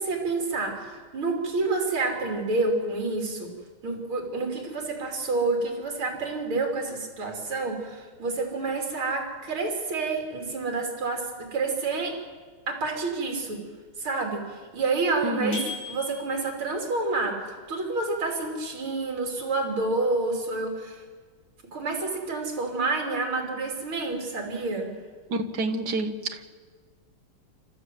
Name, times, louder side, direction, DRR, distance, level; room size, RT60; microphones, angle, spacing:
voice 1, 0.0-3.5 3.8-12.1 12.7-13.6 14.0-15.6 15.9-17.4 17.7-21.0 21.7-24.9, right 3 dB, 75° right, 2 dB, 3.8 m, -28 dB
voice 2, 15.2-15.6 25.3-26.4, right 2 dB, 55° right, 7 dB, 1.7 m, -28 dB
sound 1, 15.5-16.6, left 4 dB, 65° left, 8.5 m, -37 dB
29.5 x 13.5 x 7.7 m, 1.5 s
omnidirectional pair, 2.3 m